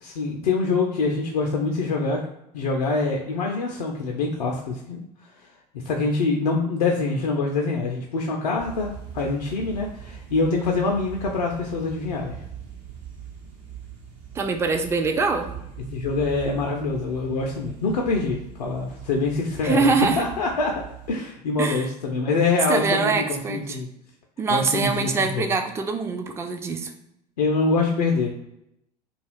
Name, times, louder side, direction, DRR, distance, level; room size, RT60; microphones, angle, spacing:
voice 1, 0.0-2.2 2.5-5.0 5.8-12.4 15.9-20.7 21.1-23.9 24.5-25.5 27.4-28.3, left 3 dB, 70° left, 0 dB, 0.4 m, -25 dB
sound 1, 8.6-21.1, right 8 dB, 70° right, 0.8 m, -41 dB
voice 2, 14.4-15.5 19.6-20.2 21.6-21.9 22.7-23.8 24.4-26.9, right 4 dB, 15° right, 6 dB, 0.3 m, -24 dB
2.3 x 2.3 x 3.3 m, 0.81 s
figure-of-eight pair, 70°, 21 cm